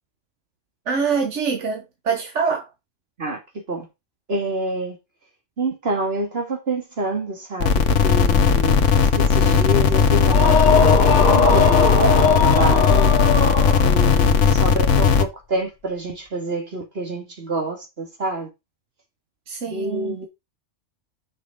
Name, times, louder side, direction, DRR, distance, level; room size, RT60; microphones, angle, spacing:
voice 1, 0.9-2.7 19.5-20.3, right 5 dB, 75° right, 1.5 m, -25 dB
voice 2, 4.3-5.0 5.6-8.8 9.2-11.0 11.3-13.2 13.8-18.5 19.7-20.3, right 2 dB, 55° right, 2.3 m, -27 dB
sound 1, 7.6-15.2, left 6 dB, 75° left, 1.3 m, -17 dB
sound 2, 10.2-14.2, left 4 dB, 40° left, 1.2 m, -19 dB
6.1 x 5.6 x 4.9 m
omnidirectional pair, 1.3 m